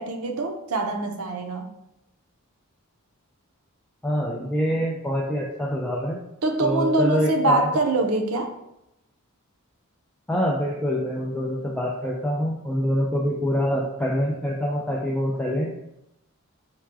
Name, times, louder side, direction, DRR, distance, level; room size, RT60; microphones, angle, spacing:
voice 1, 0.0-1.7 6.4-8.6, right 2 dB, 75° right, 0.6 m, -24 dB
voice 2, 4.0-6.2 6.6-7.7 10.3-15.7, equal, 5° left, 0.4 m, -25 dB
4.6 x 2.2 x 4.6 m
head